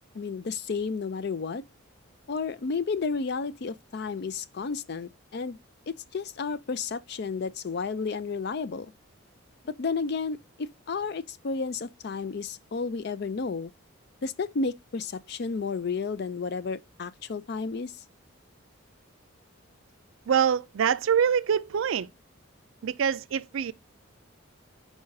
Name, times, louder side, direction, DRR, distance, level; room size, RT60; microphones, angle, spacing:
voice 1, 0.2-1.6 2.3-5.6 5.9-8.9 9.7-10.4 10.9-13.7 14.2-17.9, left 4 dB, 50° left, 0.4 m, -32 dB
voice 2, 20.3-22.1 22.8-23.7, right 8 dB, 70° right, 0.4 m, -25 dB
4.9 x 3.9 x 5.2 m
head